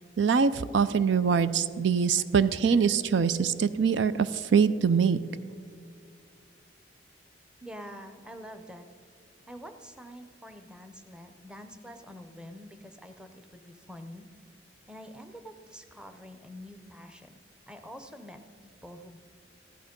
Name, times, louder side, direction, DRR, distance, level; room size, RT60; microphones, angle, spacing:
voice 1, 0.2-5.2, right 6 dB, 75° right, 14 dB, 0.4 m, -24 dB
voice 2, 7.6-8.9 9.5-14.3 14.9-17.4 17.7-19.2, equal, 5° right, 7 dB, 0.7 m, -46 dB
15.0 x 11.0 x 5.2 m, 2.3 s
head